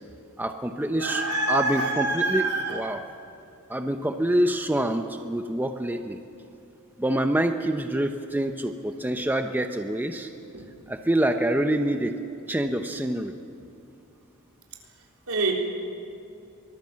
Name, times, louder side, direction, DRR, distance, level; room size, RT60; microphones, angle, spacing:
voice 1, 0.4-1.2 1.5-3.0 3.7-6.2 7.0-10.3 10.9-12.2 12.5-13.3, right 1 dB, 10° right, 6 dB, 0.8 m, -26 dB
voice 2, 1.0-3.0 10.5-10.7 15.3-15.5, right 2 dB, 75° right, 0 dB, 3.9 m, -26 dB
24.5 x 19.0 x 7.5 m, 2.6 s
head